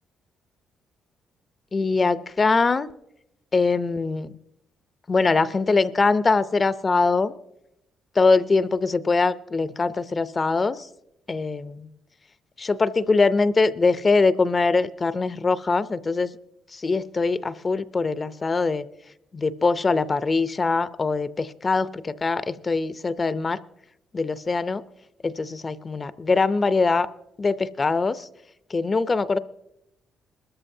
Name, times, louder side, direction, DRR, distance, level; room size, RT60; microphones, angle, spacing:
voice 1, 1.7-2.9 3.5-4.3 5.1-7.3 8.2-10.9 11.3-11.9 12.6-16.3 16.7-18.9 19.3-23.6 24.1-24.8 25.2-27.1 27.4-28.3 28.7-29.4, left 4 dB, 30° left, 14 dB, 0.5 m, -22 dB
20.5 x 13.5 x 2.7 m, 0.84 s
cardioid pair, 90°, 0 cm